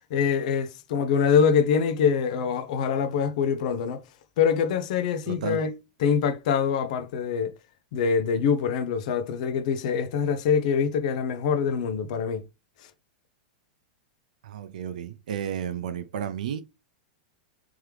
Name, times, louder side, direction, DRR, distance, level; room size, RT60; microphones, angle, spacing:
voice 1, 0.1-4.0 4.4-7.5 7.9-12.5, left 6 dB, 65° left, 0.8 m, -24 dB
voice 2, 5.3-5.6 14.4-16.6, right 8 dB, 75° right, 0.5 m, -32 dB
3.6 x 3.2 x 3.2 m
hypercardioid pair, 110°, 4 cm